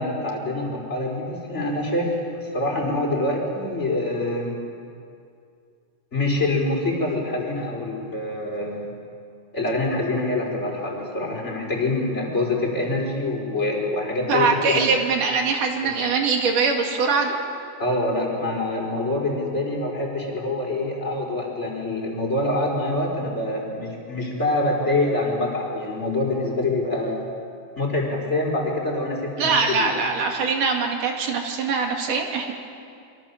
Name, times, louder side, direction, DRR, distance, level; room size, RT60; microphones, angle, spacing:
voice 1, 0.0-4.5 6.1-8.9 9.5-14.9 15.8-15.9 17.8-27.2 27.8-29.9, left 2 dB, 20° left, 0 dB, 5.0 m, -25 dB
voice 2, 14.3-17.3 29.4-32.5, right 4 dB, 70° right, 2 dB, 4.0 m, -22 dB
28.0 x 24.0 x 7.4 m, 2.4 s
omnidirectional pair, 3.9 m